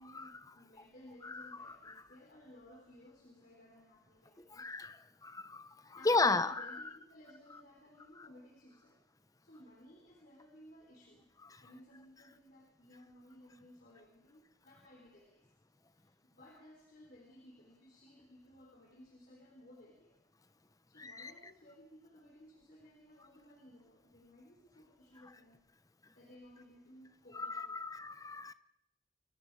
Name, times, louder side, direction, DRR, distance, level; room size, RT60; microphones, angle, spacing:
voice 1, 0.0-4.7 5.7-9.0 9.4-11.3 11.6-15.5 15.9-20.2 20.9-25.6 26.1-27.8, left 1 dB, 45° left, 4.0 m, -58 dB
voice 2, 1.2-1.7 4.5-5.0 5.2-6.8 21.0-21.3 27.3-28.5, left 3 dB, 15° left, 0.9 m, -34 dB
29.0 x 23.0 x 4.9 m
head